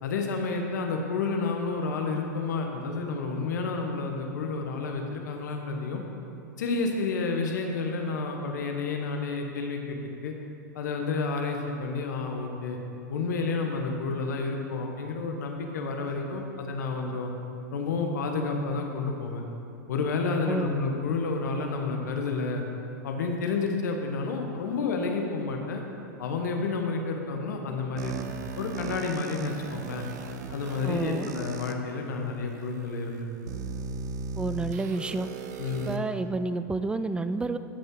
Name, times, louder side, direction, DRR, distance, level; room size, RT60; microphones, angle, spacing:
voice 1, 0.0-6.0 6.6-10.0 10.2-10.3 10.7-12.8 13.1-17.3 17.7-19.4 19.9-22.6 23.0-25.8 26.2-28.3 28.6-30.1 30.5-33.3 35.6-36.0, left 4 dB, 75° left, 3 dB, 1.2 m, -30 dB
sound 1, 28.0-31.7 32.5-32.6 33.5-36.0, right 5 dB, 65° right, 0.7 m, -37 dB
voice 2, 30.8-31.3 34.4-35.3 35.9-37.6, right 3 dB, 10° right, 11 dB, 0.4 m, -29 dB
13.0 x 5.3 x 3.9 m, 2.9 s
hypercardioid pair, 100°, 10 cm